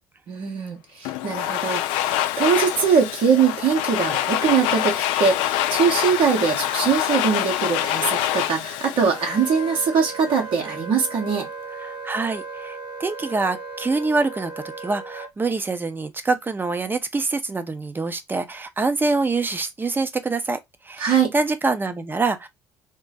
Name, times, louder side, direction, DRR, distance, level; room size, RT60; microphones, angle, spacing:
voice 1, 0.3-11.5 21.0-21.3, right 6 dB, 65° right, 1.5 m, -22 dB
Domestic sounds home sounds, 1.0-10.0, left 13 dB, 75° left, 0.4 m, -25 dB
Wind instrument woodwind instrument, 9.1-15.3, right 3 dB, 45° right, 1.4 m, -36 dB
voice 2, 11.9-14.5 14.8-20.6 20.8-22.5, right 3 dB, 20° right, 0.7 m, -25 dB
3.7 x 2.1 x 4.0 m
hypercardioid pair, 65°, 9 cm